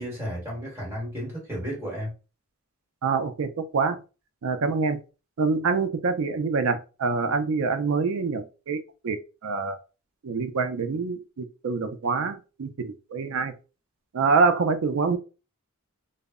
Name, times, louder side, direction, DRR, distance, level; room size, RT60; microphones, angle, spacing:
voice 1, 0.0-2.1, equal, 10° right, 1.2 m, -33 dB
voice 2, 3.0-4.0 4.4-5.0 5.4-8.8 9.0-9.8 10.2-13.5 14.1-15.2, right 4 dB, 65° right, 0.4 m, -25 dB
2.0 x 2.0 x 3.5 m
head